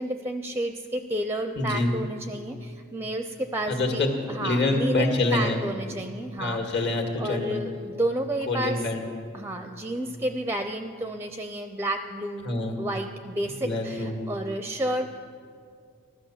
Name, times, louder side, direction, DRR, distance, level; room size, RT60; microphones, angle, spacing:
voice 1, 0.0-6.9 7.2-8.8 9.3-12.4 12.8-15.2, right 1 dB, 10° right, 7 dB, 0.5 m, -31 dB
voice 2, 1.6-1.9 3.7-4.1 4.4-5.6 6.4-7.6 8.5-9.0 10.0-10.1 12.4-12.7 13.5-14.1, left 2 dB, 55° left, 3 dB, 2.0 m, -26 dB
15.0 x 12.5 x 7.2 m, 2.3 s
head